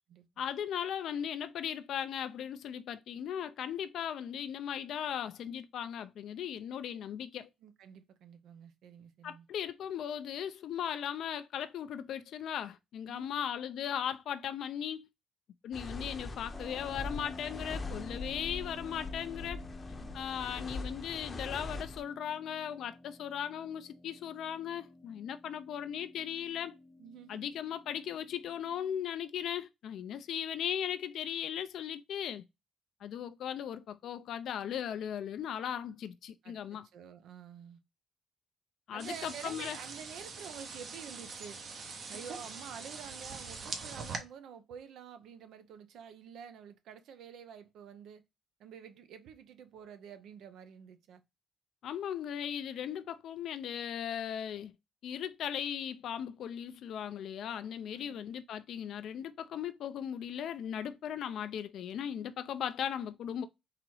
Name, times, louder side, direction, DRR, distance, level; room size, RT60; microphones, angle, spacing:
voice 1, 0.4-7.5 9.2-15.1 15.6-19.6 20.1-26.7 27.3-32.5 33.0-36.9 38.9-39.8 51.8-54.7 55.0-63.5, left 9 dB, 75° left, 0.4 m, -37 dB
voice 2, 7.6-9.5 13.1-13.4 19.9-20.2 27.0-27.4 36.4-37.8 38.9-41.6 42.1-48.2 48.6-51.2 57.9-58.2, right 8 dB, 80° right, 0.7 m, -49 dB
sound 1, 15.7-22.0, left 3 dB, 30° left, 0.7 m, -42 dB
Keyboard (musical), 16.5-29.0, left 1 dB, 5° right, 0.7 m, -51 dB
sound 2, 39.0-44.2, right 4 dB, 55° right, 1.0 m, -43 dB
4.0 x 2.9 x 4.6 m
cardioid pair, 90°, 0 cm